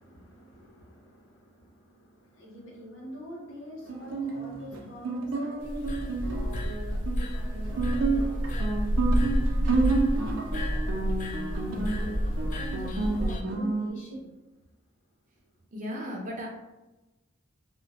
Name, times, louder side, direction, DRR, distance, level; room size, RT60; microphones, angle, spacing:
voice 1, 0.0-14.3, right 1 dB, 80° left, -2 dB, 0.9 m, -45 dB
Guitar, 3.9-13.9, right 3 dB, 85° right, 0.5 m, -30 dB
sound 1, 5.6-13.4, equal, 40° left, 0.3 m, -29 dB
voice 2, 15.7-16.5, equal, 40° right, -1 dB, 0.6 m, -35 dB
2.9 x 2.1 x 2.7 m, 1.1 s
head